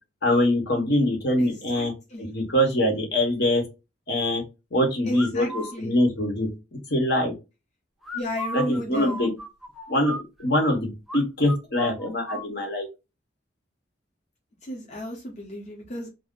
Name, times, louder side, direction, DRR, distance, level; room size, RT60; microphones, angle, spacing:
voice 1, 0.2-1.9 2.2-3.6 4.1-4.4 4.7-6.5 6.9-7.3 8.5-9.3 9.9-10.1 10.4-12.9, left 1 dB, 65° left, 1.0 m, -23 dB
voice 2, 1.4-2.3 5.1-5.9 8.1-9.2 14.6-16.1, left 1 dB, 40° left, 0.8 m, -33 dB
sound 1, 5.1-5.7 8.0-10.7 11.1-11.2 11.5-12.5, equal, ahead, 0.5 m, -35 dB
2.5 x 2.1 x 3.6 m
head